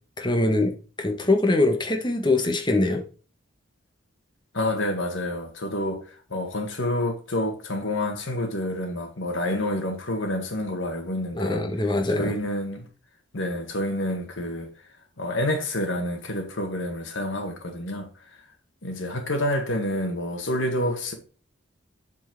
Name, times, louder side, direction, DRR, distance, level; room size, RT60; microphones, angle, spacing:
voice 1, 0.2-3.0 11.3-12.3, left 2 dB, 20° left, 1.2 m, -23 dB
voice 2, 4.5-11.6 12.1-12.9 13.3-14.7 15.2-18.4 18.8-21.1, left 1 dB, 70° left, 1.7 m, -28 dB
7.7 x 4.6 x 4.5 m
head